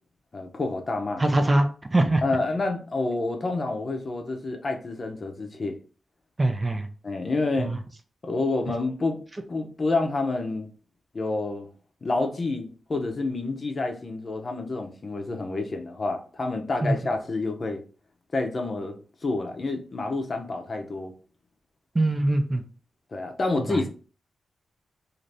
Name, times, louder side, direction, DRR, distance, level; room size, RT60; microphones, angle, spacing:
voice 1, 0.3-1.2 2.2-5.8 7.0-7.7 8.2-9.2 9.5-10.7 11.1-11.7 12.0-17.8 18.3-21.1 23.1-23.9, left 3 dB, 40° left, 0.6 m, -28 dB
voice 2, 1.2-2.2 6.4-6.9 7.6-7.8 16.8-17.0 22.0-22.6 23.7-23.8, right 2 dB, 25° right, 0.4 m, -22 dB
2.6 x 2.5 x 3.3 m
wide cardioid pair, 120°, 0 cm